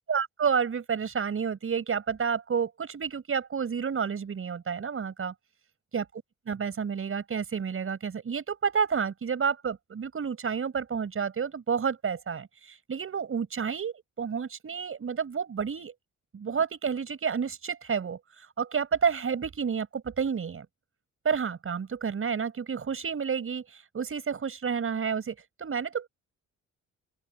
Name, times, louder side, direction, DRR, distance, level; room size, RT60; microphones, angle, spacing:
voice 1, 0.1-5.3 5.9-6.0 6.5-15.9 16.3-20.7 21.2-26.1, right 6 dB, 45° right, 6.0 m, -30 dB
open air
cardioid pair, 90°, 30 cm